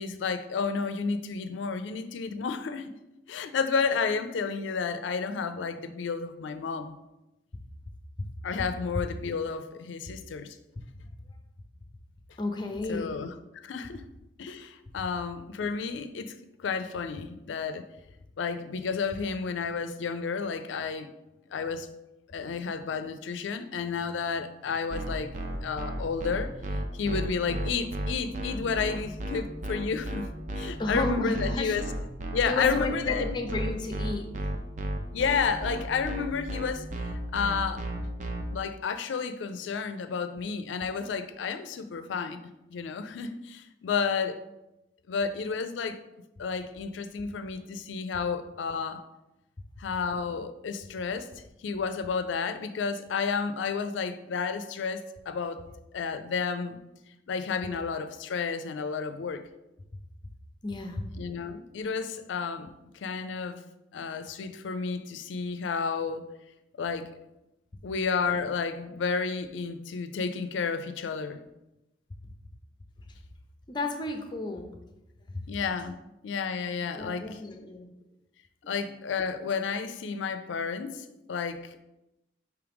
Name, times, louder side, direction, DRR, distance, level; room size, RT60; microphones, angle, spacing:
voice 1, 0.0-2.9 3.3-7.0 8.4-10.6 12.9-13.3 13.6-14.0 14.4-17.9 18.4-21.1 21.5-21.9 22.3-30.3 30.5-31.8 32.3-33.3 35.1-36.9 37.3-37.8 38.5-42.4 42.7-44.4 45.1-46.0 46.4-49.0 49.8-51.3 51.6-55.6 55.9-56.8 57.3-59.4 61.2-63.6 63.9-66.2 66.8-67.1 67.8-71.4 75.5-76.0 76.2-77.4 78.7-81.8, left 5 dB, 80° left, 10 dB, 0.4 m, -31 dB
voice 2, 12.4-13.1 30.8-31.8 32.5-34.3 60.6-61.1 73.7-74.7 77.0-77.9, left 2 dB, 25° left, 4 dB, 0.5 m, -32 dB
sound 1, 24.9-38.4, right 1 dB, 40° right, 0.5 m, -33 dB
4.8 x 3.2 x 3.4 m, 0.93 s
head